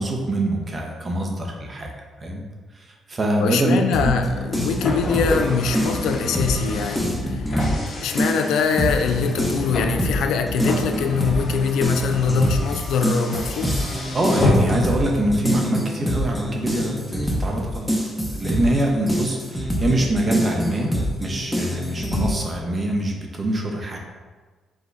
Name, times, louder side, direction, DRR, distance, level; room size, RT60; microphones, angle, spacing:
voice 1, 0.0-1.9 2.2-2.4 2.7-4.1 14.1-17.9 18.3-20.9 21.2-24.0, right 1 dB, 35° right, 1 dB, 0.8 m, -24 dB
voice 2, 3.4-7.2 8.0-13.7, left 5 dB, 85° left, 6 dB, 0.3 m, -23 dB
sound 1, 3.9-7.9 8.2-22.3, equal, 5° left, 0.8 m, -25 dB
Car, 4.3-15.0, left 2 dB, 55° left, 1.1 m, -29 dB
5.0 x 2.2 x 3.9 m, 1.4 s
cardioid pair, 90°, 0 cm